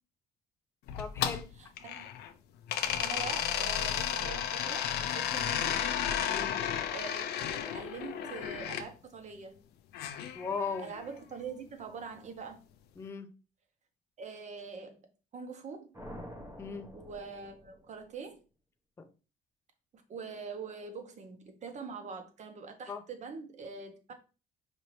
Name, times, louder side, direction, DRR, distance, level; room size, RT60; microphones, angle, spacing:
sound 1, 0.9-2.3 2.7-8.9 9.9-11.1, left 9 dB, 75° left, 0.5 m, -33 dB
voice 1, 1.0-1.5 6.3-6.6 10.3-10.9 13.0-13.3 16.6-16.9 19.0-19.1 22.9-23.0, left 5 dB, 15° left, 0.4 m, -37 dB
voice 2, 1.6-2.0 3.0-5.9 6.9-9.6 10.8-12.6 14.2-15.0 15.3-15.9 16.9-18.4 19.9-24.1, right 5 dB, 45° right, 0.9 m, -44 dB
sound 2, 15.9-18.2, equal, 15° right, 0.9 m, -47 dB
5.1 x 2.8 x 3.1 m
cardioid pair, 110°, 17 cm